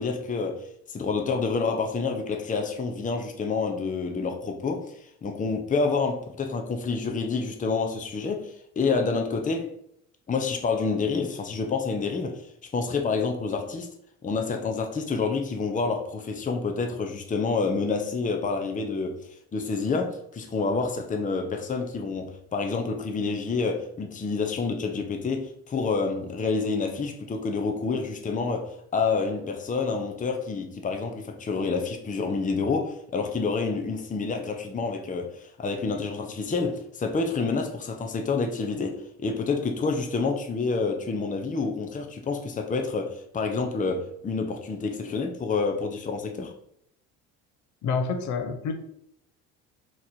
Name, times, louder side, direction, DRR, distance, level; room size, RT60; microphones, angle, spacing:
voice 1, 0.0-9.7 10.3-12.5 12.7-13.9 14.2-19.2 19.5-46.5, left 4 dB, 25° left, 0.8 m, -28 dB
voice 2, 47.8-48.7, left 5 dB, 60° left, 0.9 m, -27 dB
4.1 x 3.1 x 4.1 m
supercardioid pair, 80°, 33 cm